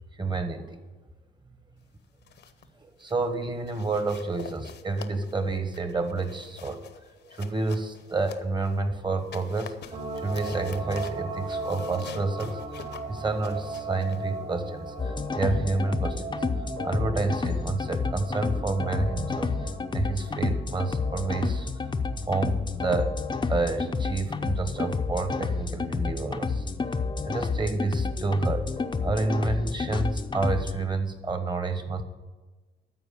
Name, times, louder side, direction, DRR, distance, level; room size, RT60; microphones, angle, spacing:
voice 1, 0.2-0.8 2.8-6.8 7.3-9.7 10.2-16.4 16.8-19.5 19.9-21.7 22.3-23.1 23.5-26.6 27.2-28.7 29.0-32.0, right 3 dB, 25° right, 8 dB, 1.3 m, -29 dB
sound 1, 2.0-2.7 3.0-3.3 3.7-8.8 9.2-15.1, left 8 dB, 60° left, 0.9 m, -47 dB
sound 2, 9.9-25.6 26.0-26.1, right 3 dB, 50° right, 2.5 m, -39 dB
sound 3, 15.0-30.7, left 4 dB, 20° left, 0.7 m, -30 dB
13.0 x 4.6 x 8.5 m, 1.2 s
cardioid pair, 90°, 20 cm